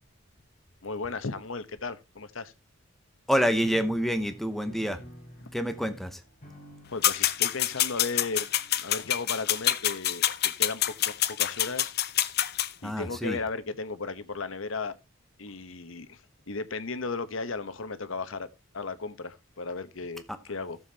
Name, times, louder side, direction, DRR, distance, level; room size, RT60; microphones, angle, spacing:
voice 1, 0.8-2.5 6.9-8.5 8.8-11.9 12.8-14.9 15.4-16.2 16.5-18.5 18.7-20.8, left 4 dB, 70° left, 1.0 m, -35 dB
voice 2, 3.3-5.0 5.5-6.2 12.8-13.4, equal, ahead, 0.8 m, -27 dB
sound 1, 3.6-11.9, equal, 30° left, 5.0 m, -51 dB
sound 2, 7.0-12.7, left 12 dB, 50° left, 0.6 m, -26 dB
16.5 x 7.2 x 2.8 m
head